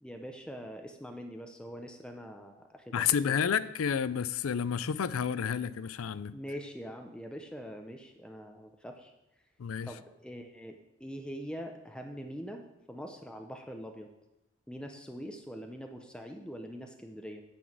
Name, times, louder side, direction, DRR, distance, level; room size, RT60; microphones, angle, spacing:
voice 1, 0.0-3.4 6.3-9.1 9.8-12.6 12.9-14.1 14.7-17.4, equal, 5° left, 0.7 m, -43 dB
voice 2, 2.9-6.4 9.6-9.9, left 7 dB, 80° left, 0.4 m, -30 dB
9.2 x 6.2 x 7.4 m
head